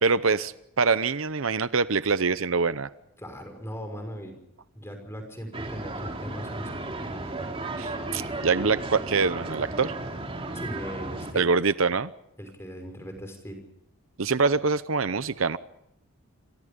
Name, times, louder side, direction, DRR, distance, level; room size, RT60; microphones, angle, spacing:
voice 1, 0.0-2.9 7.8-9.9 11.3-12.1 14.2-15.6, right 4 dB, 65° right, 14 dB, 0.8 m, -24 dB
voice 2, 3.2-4.4 4.7-7.3 10.5-11.5 12.4-13.6, equal, 10° left, 5 dB, 5.8 m, -39 dB
sound 1, 5.5-11.3, right 2 dB, 25° right, 3.2 m, -34 dB
28.5 x 25.0 x 5.3 m, 0.81 s
head